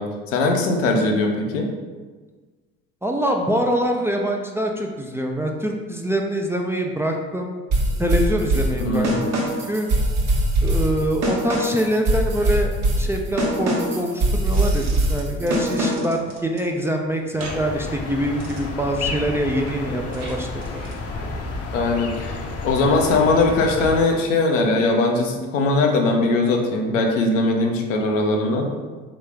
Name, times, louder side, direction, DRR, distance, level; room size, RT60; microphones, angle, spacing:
voice 1, 0.0-1.7 8.8-9.1 21.7-22.4 22.6-28.7, left 2 dB, 85° left, 2 dB, 0.6 m, -20 dB
voice 2, 3.0-7.6 8.0-9.9 10.6-12.7 13.0-14.8 15.1-20.9, right 1 dB, 5° right, 1 dB, 0.4 m, -24 dB
sound 1, 7.7-16.2, right 1 dB, 50° right, 1.1 m, -22 dB
sound 2, 14.5-21.3, right 2 dB, 85° right, 0.8 m, -41 dB
sound 3, 17.4-24.0, left 3 dB, 40° left, 0.6 m, -31 dB
3.6 x 3.0 x 3.3 m, 1.4 s
hypercardioid pair, 60°, 37 cm